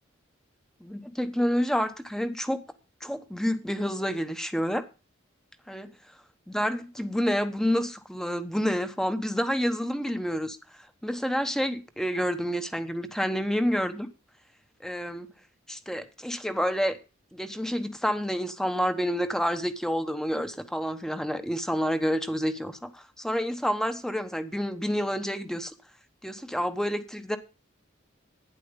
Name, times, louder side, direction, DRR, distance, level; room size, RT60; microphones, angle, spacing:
voice 1, 0.8-2.6 3.0-4.8 5.7-5.9 6.5-10.6 11.0-14.1 14.8-15.3 15.7-17.0 17.3-25.7 26.2-27.4, equal, 5° left, 1.0 m, -28 dB
12.0 x 10.0 x 5.2 m
head